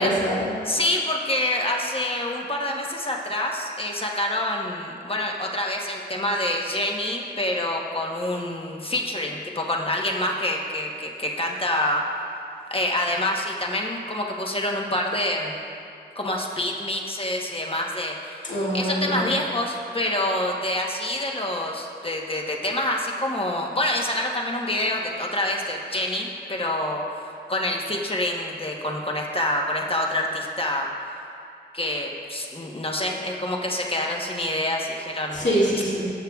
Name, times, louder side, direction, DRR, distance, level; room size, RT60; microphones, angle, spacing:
voice 1, 0.0-0.5 18.4-19.2 35.3-36.1, equal, 75° left, -7 dB, 2.2 m, -24 dB
voice 2, 0.6-12.0 12.7-15.5 16.1-30.9 31.7-35.5, left 1 dB, 30° left, 0 dB, 1.0 m, -27 dB
17.0 x 6.6 x 2.4 m, 2.5 s
wide cardioid pair, 70°, 19 cm